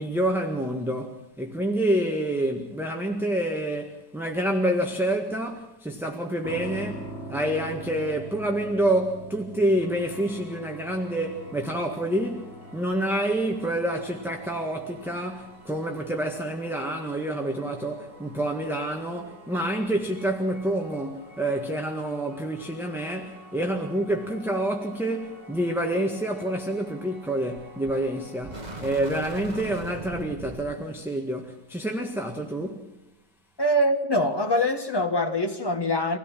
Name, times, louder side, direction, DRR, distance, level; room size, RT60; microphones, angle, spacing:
voice 1, 0.0-32.9, right 1 dB, ahead, 1.6 m, -28 dB
sound 1, 6.4-21.3, right 1 dB, 75° right, 4.0 m, -44 dB
sound 2, 9.8-29.0, equal, 55° right, 8.6 m, -50 dB
sound 3, 27.6-28.0 28.4-30.8, right 2 dB, 25° right, 2.0 m, -39 dB
voice 2, 33.6-36.2, left 1 dB, 15° left, 1.7 m, -24 dB
26.0 x 17.0 x 7.5 m
omnidirectional pair, 1.6 m